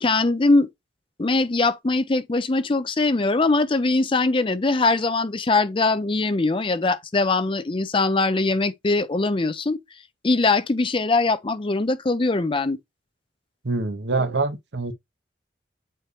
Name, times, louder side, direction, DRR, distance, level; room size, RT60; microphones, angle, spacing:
voice 1, 0.0-0.7 1.2-9.8 10.2-12.8, left 3 dB, 30° left, 0.5 m, -21 dB
voice 2, 13.6-14.9, right 3 dB, 75° right, 0.9 m, -25 dB
8.1 x 4.5 x 3.1 m
head